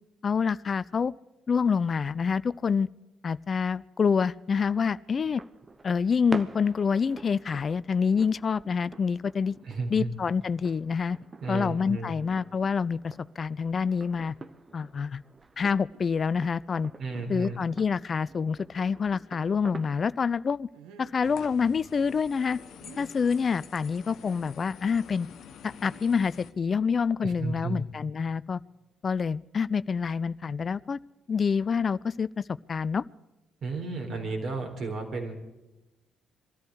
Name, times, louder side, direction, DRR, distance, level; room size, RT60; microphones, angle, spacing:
voice 1, 0.2-1.1 1.5-2.9 3.2-5.4 5.8-9.6 9.9-11.2 11.5-14.3 14.7-15.2 15.6-16.9 17.3-20.7 21.0-22.6 23.0-25.3 25.6-28.6 29.0-31.0 31.3-33.0, left 6 dB, 45° left, 18 dB, 0.4 m, -27 dB
sound 1, 5.2-20.2, right 3 dB, 30° right, 1.0 m, -46 dB
voice 2, 9.6-10.1 11.4-12.1 17.0-17.6 27.2-27.8 33.6-35.4, right 3 dB, 55° right, 3 dB, 4.1 m, -33 dB
sound 2, 15.6-16.0 16.6-16.7 17.1-17.7 18.3-18.4 20.7-21.3 22.6-23.1 24.2-24.6 25.6-26.4, right 7 dB, 80° right, 1.2 m, -53 dB
sound 3, 21.2-26.5, left 8 dB, 65° left, 1.1 m, -48 dB
22.5 x 13.5 x 4.7 m, 1.0 s
hypercardioid pair, 50°, 0 cm